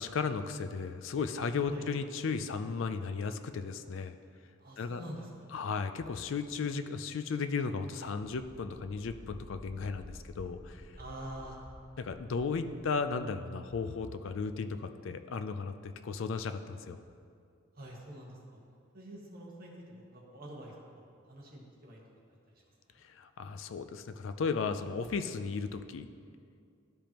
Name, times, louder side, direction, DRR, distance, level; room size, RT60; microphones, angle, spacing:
voice 1, 0.0-4.2 4.8-5.0 5.5-10.8 12.0-17.0 23.0-26.1, left 5 dB, 65° left, 10 dB, 0.4 m, -35 dB
voice 2, 4.6-5.5 11.0-11.6 17.7-18.6 18.9-22.0, right 1 dB, 45° right, -3 dB, 1.3 m, -46 dB
sound 1, 8.2-13.2, equal, 20° left, 1.8 m, -51 dB
12.0 x 5.1 x 2.9 m, 2.4 s
head